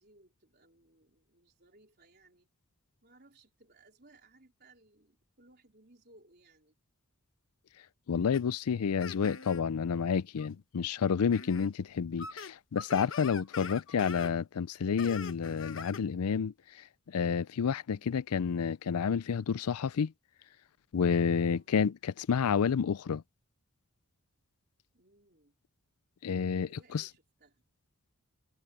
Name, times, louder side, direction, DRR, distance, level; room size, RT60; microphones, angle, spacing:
voice 1, 0.0-2.5 3.0-6.8 17.9-18.3 21.4-21.7 24.9-25.6 26.6-27.6, right 2 dB, 45° right, 4.3 m, -63 dB
voice 2, 8.1-16.5 17.1-20.1 20.9-23.2 26.2-27.1, left 6 dB, 90° left, 0.4 m, -30 dB
sound 1, 8.3-8.4 9.0-9.6 10.4-10.5 11.3-11.7 12.0-14.3 15.0-16.0, left 5 dB, 60° left, 1.2 m, -43 dB
head